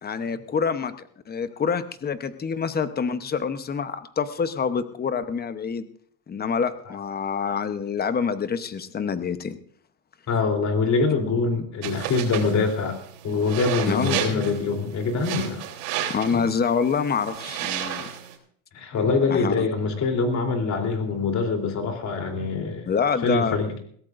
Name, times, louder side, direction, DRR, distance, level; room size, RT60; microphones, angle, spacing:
voice 1, 0.0-5.8 6.3-9.6 13.9-14.2 16.1-18.1 19.3-19.7 22.9-23.6, left 6 dB, 20° left, 11 dB, 0.9 m, -26 dB
voice 2, 10.3-13.0 13.2-15.6 16.3-16.4 18.7-22.9 23.2-23.8, left 4 dB, 35° left, 3 dB, 3.5 m, -24 dB
sound 1, 11.8-18.3, right 10 dB, 85° right, 3.6 m, -33 dB
22.0 x 16.5 x 2.6 m, 0.62 s
cardioid pair, 130°, 45 cm